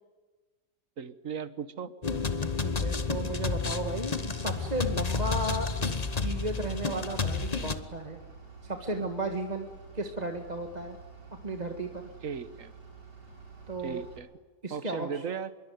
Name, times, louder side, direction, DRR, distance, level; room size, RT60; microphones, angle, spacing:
voice 1, 1.0-1.9 12.2-12.7 13.8-14.3 14.7-15.5, right 6 dB, 55° right, 14 dB, 1.5 m, -36 dB
sound 1, 2.0-7.8, left 4 dB, 25° left, 1.2 m, -31 dB
voice 2, 2.6-8.2 8.6-9.7 9.9-11.0 11.4-12.1 13.7-14.0 14.6-15.2, right 2 dB, 25° right, 4 dB, 1.7 m, -34 dB
Bus / Idling, 4.2-14.2, right 5 dB, 90° right, 8.0 m, -50 dB
25.0 x 22.0 x 9.5 m, 1.3 s
omnidirectional pair, 1.8 m